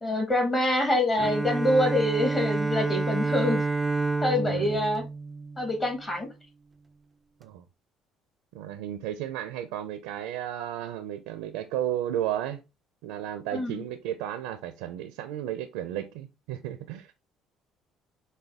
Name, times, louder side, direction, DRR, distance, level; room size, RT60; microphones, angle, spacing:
voice 1, 0.0-3.6 4.2-5.0 5.6-6.3 13.5-13.8, left 1 dB, 25° left, 1.4 m, -25 dB
Bowed string instrument, 1.2-6.1, right 3 dB, 15° right, 0.3 m, -29 dB
voice 2, 4.4-4.8 7.4-7.6 8.5-12.6 13.0-17.1, right 11 dB, 90° right, 0.4 m, -33 dB
5.0 x 2.2 x 3.4 m
supercardioid pair, 90°, 0 cm